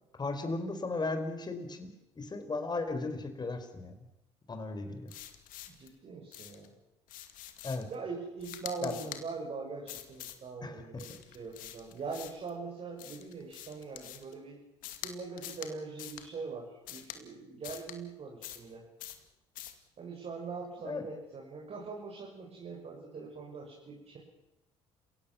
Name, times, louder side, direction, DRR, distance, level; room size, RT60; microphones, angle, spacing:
voice 1, 0.2-1.9 2.2-3.9 4.5-5.1 7.6-7.9 8.8-9.0 10.6-10.8 20.8-21.0, left 3 dB, 30° left, 8 dB, 5.2 m, -35 dB
sound 1, 5.1-5.9 6.3-6.7 7.1-7.9 8.4-9.2 9.9-10.4 11.0-12.5 13.0-14.3 14.8-15.1 15.4-15.7 16.0-16.3 16.9-17.2 17.6-18.0 18.4-18.7 19.0-19.2 19.6-19.8, left 12 dB, 70° left, 2.4 m, -45 dB
voice 2, 5.7-6.7 7.9-14.6 15.0-18.8 20.0-24.2, right 4 dB, 45° right, -1 dB, 6.8 m, -42 dB
30.0 x 17.0 x 7.4 m, 0.93 s
hypercardioid pair, 60°, 15 cm